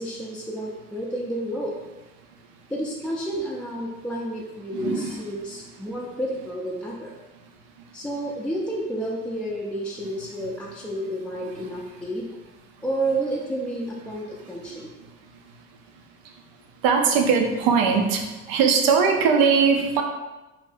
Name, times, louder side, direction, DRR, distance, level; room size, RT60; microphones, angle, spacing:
voice 1, 0.0-1.8 2.7-7.1 7.9-12.3 12.8-14.9, right 1 dB, 5° left, -4 dB, 0.3 m, -30 dB
voice 2, 4.7-5.1 16.8-18.2 18.5-20.0, right 5 dB, 85° right, 3 dB, 0.5 m, -20 dB
2.7 x 2.1 x 3.2 m, 1.1 s
supercardioid pair, 75°, 33 cm